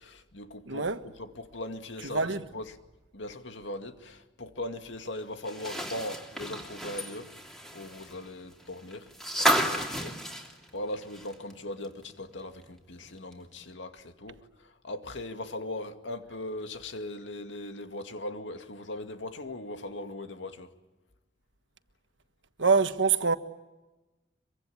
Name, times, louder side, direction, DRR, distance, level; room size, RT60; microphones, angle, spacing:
voice 1, 0.0-0.9 1.2-2.8 3.1-7.3 7.7-9.1 9.4-20.7, left 1 dB, 80° left, 2.2 m, -39 dB
voice 2, 0.7-1.0 2.1-2.4 22.6-23.4, right 5 dB, 90° right, 1.4 m, -24 dB
sound 1, 5.4-11.5 11.8-11.9 13.3-13.4, right 1 dB, ahead, 3.0 m, -32 dB
25.0 x 24.0 x 8.6 m
head